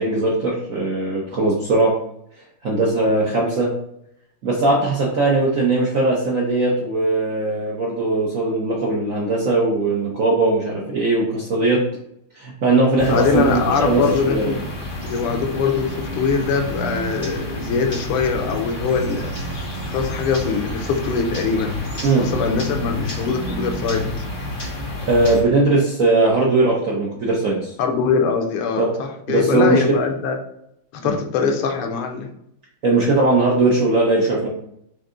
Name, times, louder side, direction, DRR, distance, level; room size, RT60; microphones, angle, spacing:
voice 1, 0.0-1.9 2.6-3.7 4.4-11.8 12.4-13.5 13.8-14.5 22.0-22.3 25.0-27.7 28.8-28.9 29.3-29.8 31.0-31.1 32.8-34.5, right 2 dB, 65° right, -4 dB, 0.8 m, -19 dB
voice 2, 13.0-14.6 15.0-19.3 19.8-21.8 22.2-24.2 27.8-30.4 30.9-32.3, left 5 dB, 90° left, 4 dB, 1.6 m, -22 dB
sound 1, 13.0-25.4, left 1 dB, 25° left, 1.5 m, -29 dB
5.1 x 2.6 x 3.7 m, 0.75 s
omnidirectional pair, 2.4 m